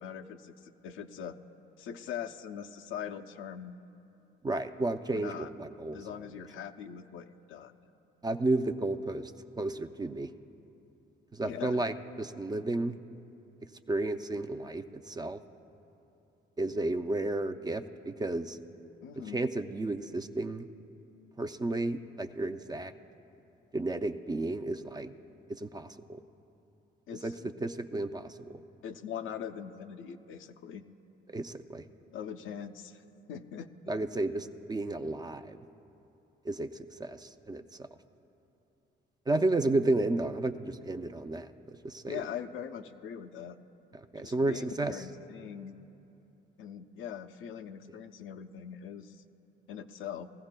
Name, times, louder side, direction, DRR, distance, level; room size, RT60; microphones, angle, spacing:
voice 1, 0.0-1.4 1.8-3.8 5.1-5.5 5.9-7.9 11.4-11.8 19.0-19.4 27.1-27.5 28.8-30.8 32.1-33.0 33.3-33.7 42.1-43.6 44.2-45.8 46.6-49.2 49.7-50.3, left 8 dB, 80° left, 8 dB, 0.6 m, -42 dB
voice 2, 4.4-6.0 8.2-9.3 9.6-10.3 11.3-13.0 13.9-15.4 16.6-18.6 19.2-20.7 21.4-22.9 23.7-25.1 25.5-26.2 27.2-27.3 27.6-28.3 31.3-31.8 33.9-35.6 36.4-37.9 39.3-42.2 44.1-45.0, right 2 dB, 20° right, 8 dB, 0.4 m, -32 dB
20.5 x 15.0 x 2.2 m, 2.8 s
cardioid pair, 90°, 20 cm